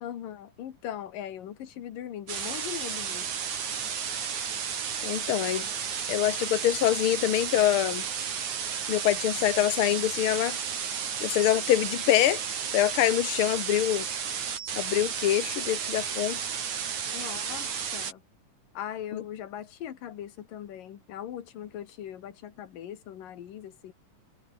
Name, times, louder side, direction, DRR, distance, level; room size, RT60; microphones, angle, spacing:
voice 1, 0.0-3.3 17.1-18.2 18.8-23.9, left 10 dB, 90° left, 3.5 m, -40 dB
sound 1, 2.3-18.1, right 7 dB, 60° right, 4.2 m, -33 dB
voice 2, 5.0-5.7 6.1-8.0 8.9-10.6 11.2-12.4 12.7-14.1 14.8-16.5 19.1-19.2, left 13 dB, 60° left, 1.5 m, -25 dB
omnidirectional pair, 3.8 m